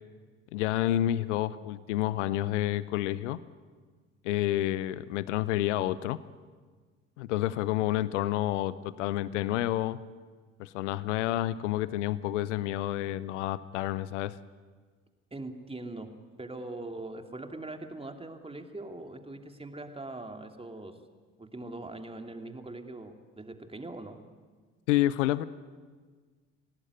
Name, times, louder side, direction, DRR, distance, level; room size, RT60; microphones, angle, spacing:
voice 1, 0.5-3.4 4.2-6.2 7.2-10.0 10.6-14.3 24.9-25.4, left 14 dB, 75° left, 18 dB, 0.8 m, -29 dB
voice 2, 15.3-16.1 16.4-21.0 21.4-24.2, right 2 dB, 15° right, 5 dB, 2.9 m, -41 dB
26.0 x 18.5 x 10.0 m, 1.5 s
hypercardioid pair, 55°, 36 cm